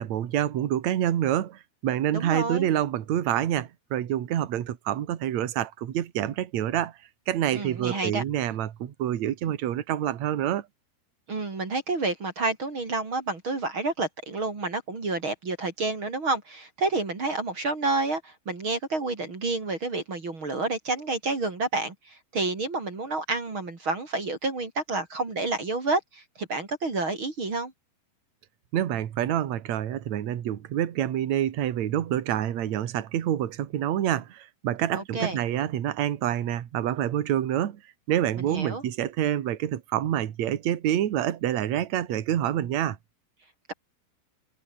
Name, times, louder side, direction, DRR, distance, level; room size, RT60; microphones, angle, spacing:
voice 1, 0.0-6.9 7.3-10.7 28.7-37.8 38.1-43.0, right 11 dB, 55° right, 2.3 m, -27 dB
voice 2, 2.1-2.7 7.5-8.2 11.3-27.7 34.9-35.4 38.4-38.8, right 3 dB, 30° right, 3.8 m, -29 dB
omnidirectional pair, 4.9 m